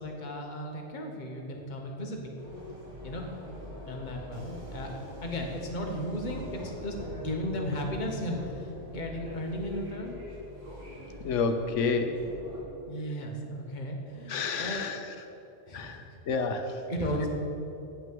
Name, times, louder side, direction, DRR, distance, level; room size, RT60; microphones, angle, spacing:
voice 1, 0.0-2.3 3.0-3.3 3.9-10.2 12.8-14.9 15.7-16.0 16.9-17.3, equal, 40° left, 1 dB, 1.3 m, -35 dB
sound 1, 2.4-12.6, left 1 dB, 80° right, 2.5 m, -43 dB
voice 2, 11.2-12.2 14.3-15.0 15.7-16.7, left 4 dB, 85° left, 6 dB, 1.2 m, -29 dB
8.6 x 6.0 x 7.7 m, 2.9 s
omnidirectional pair, 1.2 m